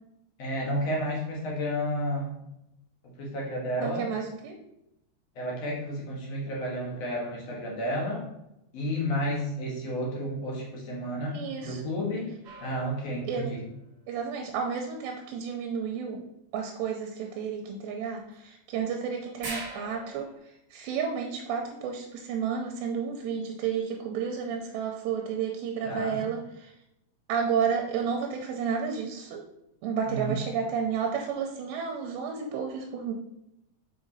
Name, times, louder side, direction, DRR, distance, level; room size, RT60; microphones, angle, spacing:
voice 1, 0.4-2.4 3.0-4.1 5.4-8.3 8.7-12.3 12.6-13.6 25.8-26.3 30.1-30.4, equal, 50° left, -4 dB, 2.1 m, -31 dB
voice 2, 3.8-4.6 11.3-11.8 13.2-13.5 14.1-16.2 16.5-26.7 27.3-29.4 29.8-33.1, right 6 dB, 80° right, 2 dB, 2.8 m, -31 dB
sound 1, 12.4-13.7 18.3-18.4 18.7-18.8 19.4-20.4, right 2 dB, 55° right, 1.6 m, -41 dB
7.2 x 4.9 x 4.1 m, 0.85 s
omnidirectional pair, 5.0 m